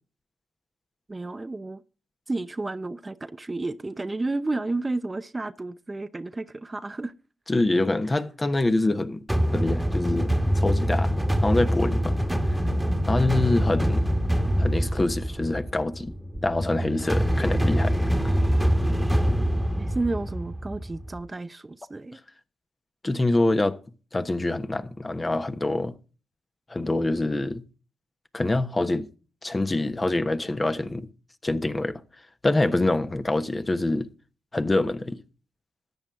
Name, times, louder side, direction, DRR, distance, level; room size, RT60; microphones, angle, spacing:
voice 1, 1.1-1.8 2.3-7.1 19.8-22.2, right 2 dB, 25° right, 0.7 m, -31 dB
voice 2, 7.5-9.2 9.5-11.1 11.4-12.1 12.5-12.6 13.0-14.1 14.6-16.1 16.4-18.1 23.0-23.8 24.1-25.9 26.7-27.6 28.3-29.1 29.4-31.1 31.4-32.0 32.4-34.1 34.5-35.2, left 2 dB, 25° left, 1.2 m, -25 dB
sound 1, 9.3-21.2, equal, 5° right, 1.6 m, -25 dB
13.5 x 9.0 x 3.7 m
supercardioid pair, 45°, 0 cm